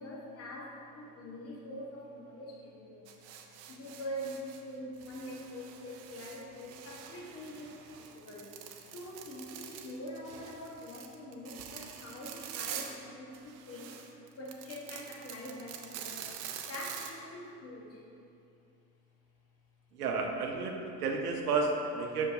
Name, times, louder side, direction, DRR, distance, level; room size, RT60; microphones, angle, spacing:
voice 1, 0.0-3.2 3.7-8.6 8.9-14.0 14.4-16.3 16.7-18.0, equal, 30° left, -2 dB, 1.2 m, -44 dB
sound 1, 3.1-4.6 4.9-13.0 13.3-17.1, right 9 dB, 35° right, 0.6 m, -46 dB
voice 2, 19.9-22.3, right 4 dB, 70° right, 2 dB, 0.8 m, -32 dB
7.8 x 6.3 x 2.7 m, 2.6 s
figure-of-eight pair, 75°, 48 cm